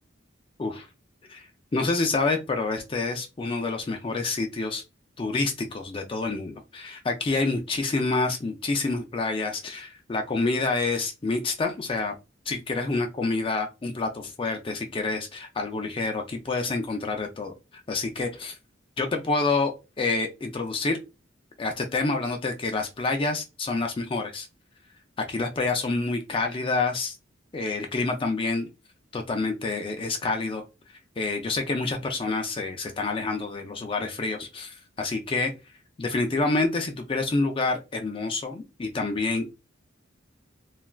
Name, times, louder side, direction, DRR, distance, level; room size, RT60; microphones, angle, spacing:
voice 1, 1.7-4.8 5.2-12.1 12.5-18.6 19.0-21.0 21.6-24.5 25.2-27.2 27.5-28.7 29.1-30.6 31.2-35.5 36.0-39.6, left 3 dB, 25° left, 4 dB, 0.4 m, -28 dB
3.2 x 2.3 x 2.3 m, 0.26 s
head